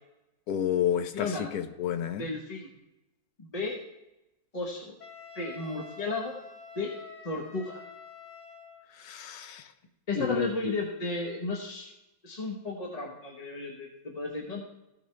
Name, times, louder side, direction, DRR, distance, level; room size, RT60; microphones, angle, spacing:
voice 1, 0.5-2.3 9.0-9.7 10.2-10.8, left 9 dB, 85° left, 10 dB, 1.2 m, -30 dB
voice 2, 1.1-1.5 2.2-2.7 3.4-3.8 4.5-4.9 5.3-6.4 6.7-6.9 7.2-7.8 10.1-11.9 12.2-14.6, left 2 dB, 30° left, -1 dB, 1.1 m, -34 dB
Wind instrument woodwind instrument, 5.0-8.9, left 4 dB, 55° left, 1.5 m, -47 dB
15.0 x 6.4 x 3.3 m, 0.94 s
omnidirectional pair, 1.6 m